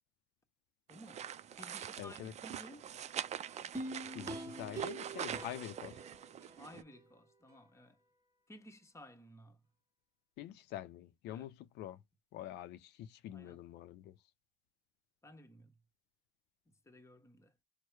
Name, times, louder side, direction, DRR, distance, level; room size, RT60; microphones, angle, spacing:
voice 1, 0.9-1.3 1.5-2.9 6.6-8.0 8.5-9.6 11.3-11.5 13.3-13.6 15.2-15.8 16.7-17.5, equal, 15° left, 1.1 m, -55 dB
sound 1, 0.9-6.8, right 9 dB, 40° right, 0.5 m, -44 dB
voice 2, 2.0-2.3 4.1-6.0 10.4-12.0 12.3-14.2, left 12 dB, 80° left, 0.5 m, -46 dB
sound 2, 3.7-7.0 7.5-7.6, right 2 dB, 20° right, 1.2 m, -45 dB
4.5 x 2.1 x 4.7 m
cardioid pair, 110°, 17 cm